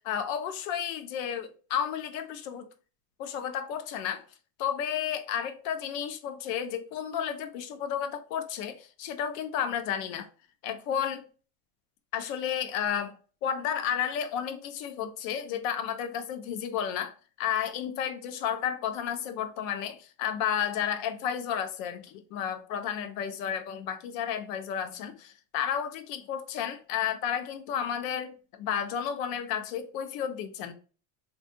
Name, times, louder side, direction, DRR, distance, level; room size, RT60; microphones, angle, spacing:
voice 1, 0.0-2.7 3.2-4.2 4.6-10.3 10.6-11.2 12.1-13.1 13.4-30.7, left 9 dB, 80° left, 0.6 m, -32 dB
3.5 x 2.3 x 2.6 m
cardioid pair, 170°, 40 cm